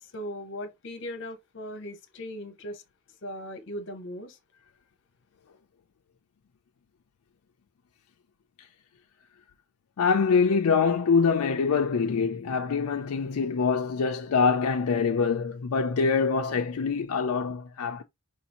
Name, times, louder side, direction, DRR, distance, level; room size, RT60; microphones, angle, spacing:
voice 1, 0.0-2.8 3.2-4.4, equal, 55° left, 0.9 m, -38 dB
voice 2, 10.0-18.0, left 5 dB, 85° left, 0.4 m, -24 dB
4.9 x 2.6 x 2.9 m
head